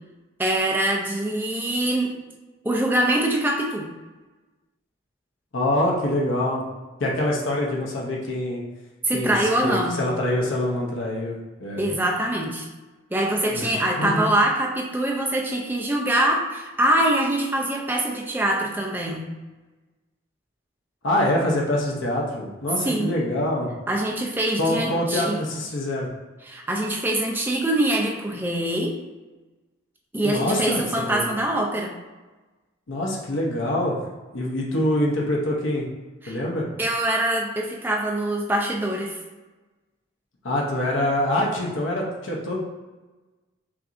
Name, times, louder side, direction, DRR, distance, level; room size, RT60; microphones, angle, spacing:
voice 1, 0.4-2.1 2.6-3.9 9.0-9.9 11.8-12.7 13.1-19.2 22.8-23.1 23.9-25.4 26.4-28.9 30.1-31.9 36.2-36.4 36.8-39.2, right 1 dB, 10° right, -1 dB, 0.4 m, -24 dB
voice 2, 5.5-6.6 7.0-8.6 9.1-11.9 13.5-14.3 21.0-23.7 24.6-26.1 30.2-31.3 32.9-34.0 34.3-35.9 36.3-36.7 40.4-42.6, left 1 dB, 70° left, -2 dB, 0.7 m, -25 dB
5.8 x 2.6 x 2.6 m, 1.2 s
head